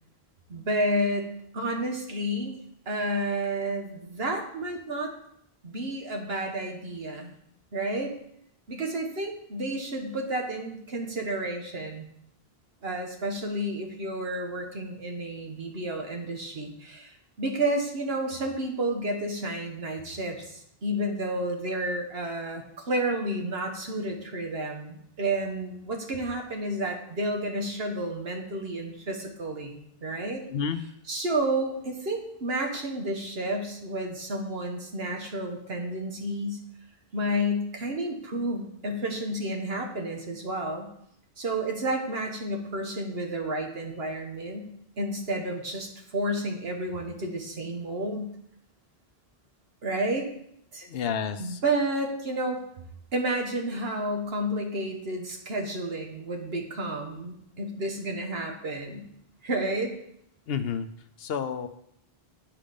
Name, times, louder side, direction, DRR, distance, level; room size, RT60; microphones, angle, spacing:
voice 1, 0.5-2.6 2.9-5.1 5.6-7.3 7.7-8.1 8.7-12.1 12.8-30.4 31.1-36.6 37.1-40.9 41.4-44.7 45.0-48.3 49.8-50.3 50.7-50.9 51.4-52.6 53.1-59.1 59.4-59.9, right 1 dB, 75° right, 3 dB, 1.5 m, -31 dB
voice 2, 50.8-51.6 60.5-60.9 61.2-61.7, left 7 dB, 70° left, 11 dB, 0.8 m, -30 dB
8.8 x 5.0 x 5.2 m, 0.73 s
omnidirectional pair, 1.0 m